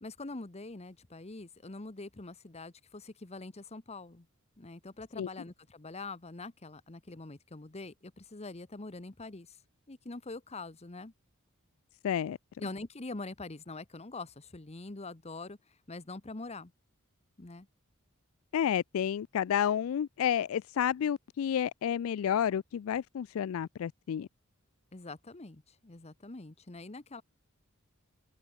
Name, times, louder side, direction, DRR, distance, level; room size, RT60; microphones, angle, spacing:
voice 1, 0.0-4.3 4.6-9.6 9.9-11.1 12.6-15.6 15.9-16.7 17.4-17.7 24.9-27.2, left 3 dB, 30° left, 1.1 m, -44 dB
voice 2, 12.0-12.4 18.5-24.3, left 9 dB, 70° left, 0.3 m, -30 dB
open air
head